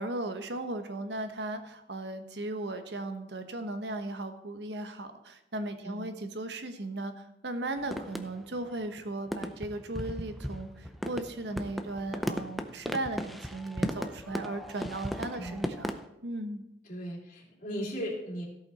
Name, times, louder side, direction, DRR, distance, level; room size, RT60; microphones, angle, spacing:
voice 1, 0.0-7.1 7.4-15.9 16.2-16.6, right 2 dB, 70° right, 8 dB, 1.1 m, -36 dB
sound 1, 7.8-8.7 9.0-9.1 9.3-16.0, equal, ahead, 0.5 m, -36 dB
voice 2, 16.8-18.5, equal, 45° left, -4 dB, 3.1 m, -37 dB
16.5 x 5.7 x 4.2 m, 0.88 s
head